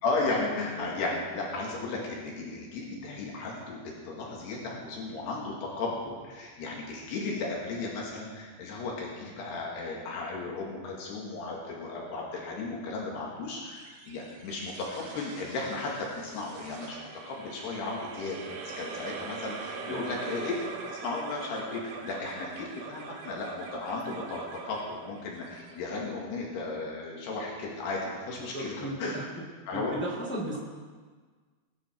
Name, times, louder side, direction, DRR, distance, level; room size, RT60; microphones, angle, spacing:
voice 1, 0.0-17.0 17.3-29.1 29.7-29.9, left 3 dB, 80° left, -2 dB, 4.1 m, -35 dB
sound 1, 13.7-26.4, right 5 dB, 80° right, 3.2 m, -43 dB
voice 2, 19.7-20.1 28.4-29.3 29.7-30.6, right 1 dB, 10° left, -3 dB, 0.5 m, -35 dB
21.0 x 10.0 x 4.6 m, 1.5 s
omnidirectional pair, 4.7 m